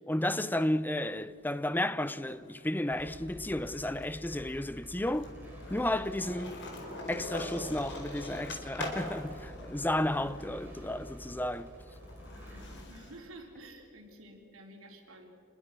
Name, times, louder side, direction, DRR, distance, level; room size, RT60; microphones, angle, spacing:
voice 1, 0.1-5.3 5.7-6.6 7.1-11.7, left 1 dB, 10° left, 0.6 m, -32 dB
Skateboard, 1.0-2.6 2.9-13.2, left 2 dB, 60° left, 4.2 m, -44 dB
sound 1, 2.9-12.8, equal, 10° right, 6.3 m, -49 dB
voice 2, 10.1-10.4 12.4-15.3, right 1 dB, 80° right, 4.2 m, -51 dB
27.0 x 22.0 x 6.2 m
head